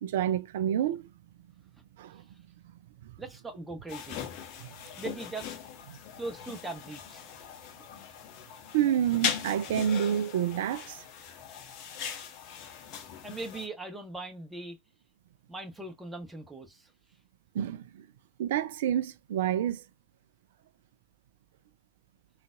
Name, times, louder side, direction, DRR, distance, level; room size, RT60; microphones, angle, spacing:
voice 1, 0.0-1.1 2.0-2.2 3.0-3.1 4.6-4.7 5.9-6.0 8.7-11.0 17.5-18.0 18.4-19.8, right 10 dB, 60° right, 0.4 m, -28 dB
voice 2, 3.2-4.2 5.0-5.6 6.2-7.4 13.2-14.8 15.5-16.9, right 2 dB, 10° right, 1.0 m, -40 dB
sound 1, 3.9-13.7, left 8 dB, 45° left, 0.7 m, -39 dB
3.8 x 2.4 x 2.3 m
figure-of-eight pair, 85°, 0 cm